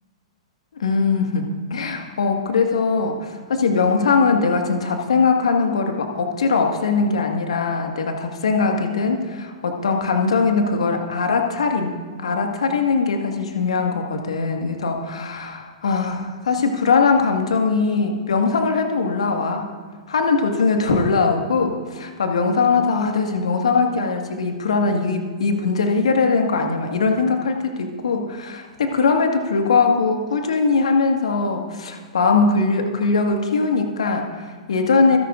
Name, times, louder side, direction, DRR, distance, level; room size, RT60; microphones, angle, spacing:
voice 1, 0.7-19.7 20.1-35.2, left 4 dB, 70° left, 3 dB, 1.8 m, -21 dB
26.0 x 11.0 x 2.6 m, 1.5 s
figure-of-eight pair, 110°, 3 cm